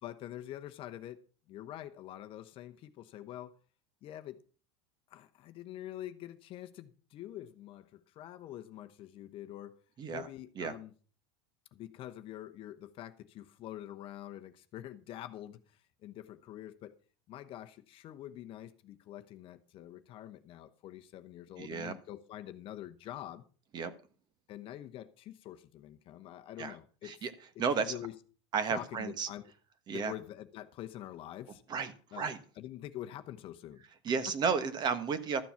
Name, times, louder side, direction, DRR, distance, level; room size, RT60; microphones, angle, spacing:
voice 1, 0.0-3.6 4.0-4.4 5.1-9.8 10.1-10.9 11.7-16.9 17.3-23.4 24.5-27.2 27.5-28.2 28.7-29.5 29.9-31.6 32.1-32.3 32.6-33.8, left 12 dB, 40° left, 0.9 m, -46 dB
voice 2, 21.6-21.9 23.7-23.9 26.6-26.7 27.0-27.3 27.6-28.0 28.5-29.3 29.9-30.1 31.7-32.4 34.0-35.4, right 5 dB, 30° right, 1.2 m, -33 dB
13.0 x 7.0 x 5.7 m
supercardioid pair, 140°, 14 cm